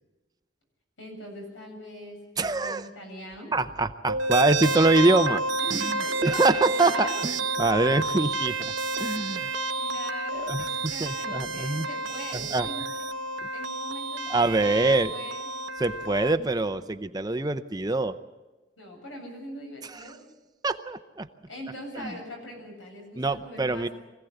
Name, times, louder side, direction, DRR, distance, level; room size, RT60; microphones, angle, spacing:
voice 1, 1.0-3.5 5.6-7.3 7.6-7.7 9.8-13.0 13.5-15.5 18.8-20.2 21.5-23.9, equal, 90° left, 2 dB, 7.9 m, -42 dB
voice 2, 2.4-2.9 3.5-5.4 5.7-9.5 10.3-11.9 12.3-12.7 14.3-15.1 15.8-18.2 19.9-20.1 20.6-21.3 22.0-22.1 23.2-23.9, right 2 dB, 20° right, 10 dB, 0.6 m, -25 dB
sound 1, 4.1-16.3, right 2 dB, 85° right, 1.0 m, -30 dB
24.5 x 16.5 x 7.9 m, 1.2 s
head